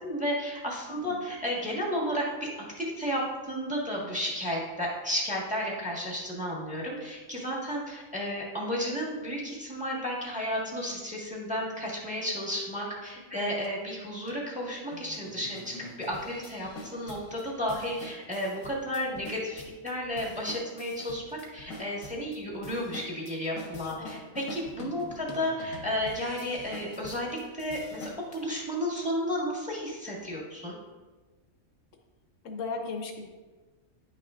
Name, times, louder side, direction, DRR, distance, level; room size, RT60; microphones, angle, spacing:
voice 1, 0.0-2.5 2.8-3.2 3.5-21.2 21.5-30.7, equal, 5° right, -4 dB, 1.5 m, -33 dB
voice 2, 0.9-1.4 13.3-13.5 23.9-24.2 24.9-25.3 32.4-33.3, left 4 dB, 75° left, 3 dB, 1.1 m, -38 dB
sound 1, 13.6-13.7 14.3-14.4 14.9-28.4, left 2 dB, 90° left, 1.4 m, -46 dB
10.0 x 5.8 x 2.5 m, 1.3 s
omnidirectional pair, 1.4 m